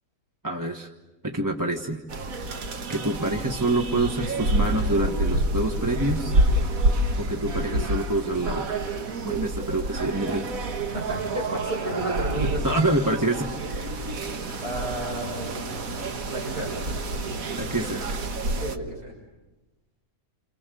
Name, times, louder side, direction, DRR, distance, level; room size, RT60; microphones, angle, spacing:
voice 1, 0.4-0.9 1.2-2.0 2.9-6.4 7.2-8.9 9.2-10.5 12.6-13.5 13.8-13.9 14.3-14.6 17.5-18.1, right 2 dB, 15° right, 2 dB, 1.3 m, -27 dB
sound 1, 2.1-18.8, right 1 dB, 65° right, 1.8 m, -28 dB
voice 2, 10.9-12.6 14.4-15.6 16.3-16.7 17.8-17.9 18.6-19.1, right 2 dB, 90° right, -1 dB, 7.2 m, -32 dB
29.5 x 28.0 x 6.9 m, 1.1 s
omnidirectional pair, 1.6 m